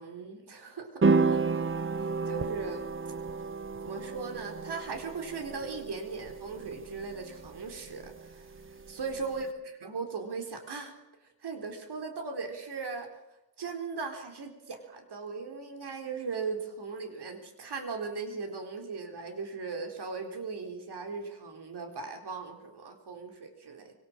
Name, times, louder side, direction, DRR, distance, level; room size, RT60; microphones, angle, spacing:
voice 1, 0.0-1.7 2.0-2.9 3.8-10.9 11.4-13.2 13.6-23.9, right 4 dB, 80° right, 5 dB, 4.1 m, -38 dB
sound 1, 1.0-9.4, right 4 dB, 30° right, 1.1 m, -32 dB
26.0 x 22.5 x 7.4 m, 0.98 s
wide cardioid pair, 160°, 39 cm